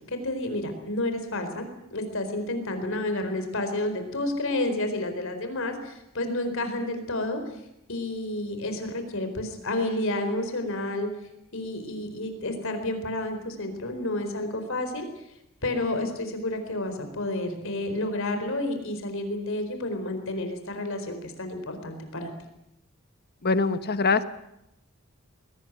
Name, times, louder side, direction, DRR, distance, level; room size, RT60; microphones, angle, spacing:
voice 1, 0.1-7.4 7.9-11.1 11.5-15.1 15.6-22.3, left 1 dB, 65° left, 7 dB, 4.4 m, -30 dB
voice 2, 23.4-24.2, left 4 dB, 50° left, 12 dB, 1.3 m, -23 dB
22.0 x 19.0 x 9.2 m, 0.84 s
head